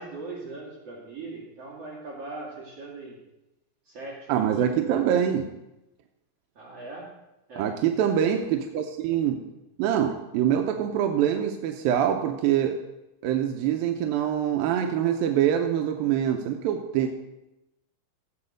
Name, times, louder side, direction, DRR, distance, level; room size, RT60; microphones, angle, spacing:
voice 1, 0.0-3.2 3.9-5.0 6.5-7.1 7.5-7.7, right 2 dB, 45° right, -4 dB, 2.7 m, -40 dB
voice 2, 4.3-5.5 7.6-9.4 9.8-12.8 13.2-17.1, right 9 dB, 80° right, 4 dB, 2.3 m, -24 dB
16.0 x 7.7 x 5.1 m, 0.93 s
omnidirectional pair, 4.9 m